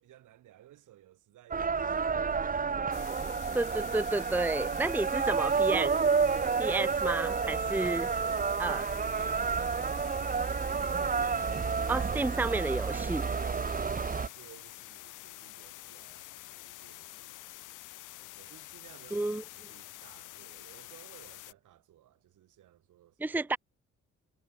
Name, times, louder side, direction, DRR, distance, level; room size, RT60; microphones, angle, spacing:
voice 1, 0.0-2.9 4.6-5.4 7.7-10.9 11.4-11.9 13.4-17.4 18.4-23.5, right 13 dB, 80° right, 7.8 m, -57 dB
sound 1, 1.5-14.3, right 5 dB, 30° right, 1.1 m, -30 dB
sound 2, 2.9-21.5, left 17 dB, 90° left, 1.6 m, -48 dB
voice 2, 3.5-5.9 6.6-8.1 8.6-8.8 11.9-13.3 19.1-19.4 23.2-23.6, right 2 dB, 5° right, 0.7 m, -31 dB
cardioid pair, 90°, 30 cm